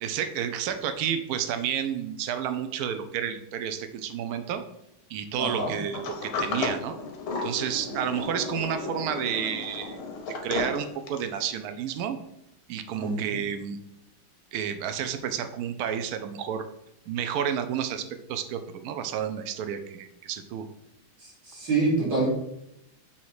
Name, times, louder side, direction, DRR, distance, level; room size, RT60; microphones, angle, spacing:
voice 1, 0.0-4.6 5.1-7.0 7.4-10.0 10.4-12.2 12.7-13.8 14.5-16.6 17.1-20.7, right 8 dB, 80° right, 9 dB, 0.8 m, -30 dB
voice 2, 5.4-5.7 13.0-13.4 21.2-22.3, right 3 dB, 60° right, -6 dB, 3.1 m, -27 dB
Sliding door, 5.9-11.4, left 4 dB, 90° left, 1.7 m, -34 dB
7.2 x 2.9 x 4.7 m, 0.81 s
omnidirectional pair, 2.2 m